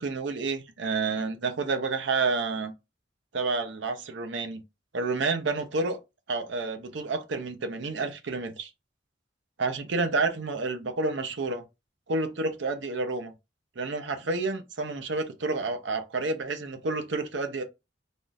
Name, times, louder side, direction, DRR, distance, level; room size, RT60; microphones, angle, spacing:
voice 1, 0.0-2.7 3.3-4.6 4.9-6.0 6.3-8.7 9.6-11.6 12.1-13.3 13.8-17.6, right 3 dB, 85° right, 0.6 m, -29 dB
3.5 x 2.6 x 2.3 m
head